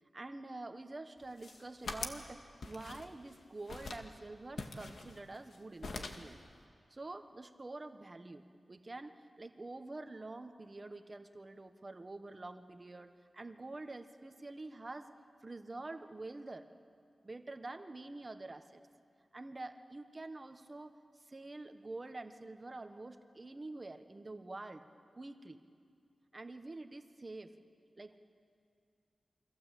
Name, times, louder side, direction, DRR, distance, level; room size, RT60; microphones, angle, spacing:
voice 1, 0.1-6.4 6.9-15.1 15.4-16.7 17.2-18.8 19.3-20.9 21.3-24.8 25.1-25.6 26.3-27.5 28.0-28.2, right 2 dB, 30° right, 7 dB, 1.3 m, -47 dB
sound 1, 1.2-2.3 2.6-3.3 3.7-4.1 4.6-5.6 5.8-6.3, left 3 dB, 70° left, 2.0 m, -44 dB
29.0 x 24.5 x 8.4 m, 2.3 s
wide cardioid pair, 130°, 0 cm